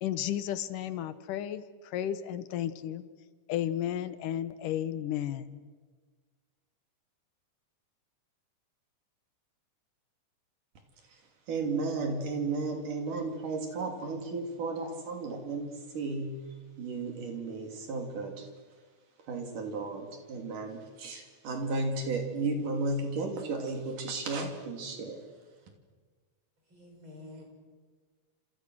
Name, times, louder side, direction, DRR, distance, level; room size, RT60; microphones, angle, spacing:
voice 1, 0.0-3.0 3.5-5.6, left 11 dB, 85° left, 12 dB, 2.7 m, -33 dB
voice 2, 11.5-15.7 15.9-16.3 16.8-18.5 19.3-25.2, right 3 dB, 75° right, 3 dB, 4.3 m, -34 dB
voice 3, 26.7-27.4, left 2 dB, 35° right, 1 dB, 6.8 m, -48 dB
28.5 x 28.0 x 6.3 m, 1.5 s
omnidirectional pair, 3.7 m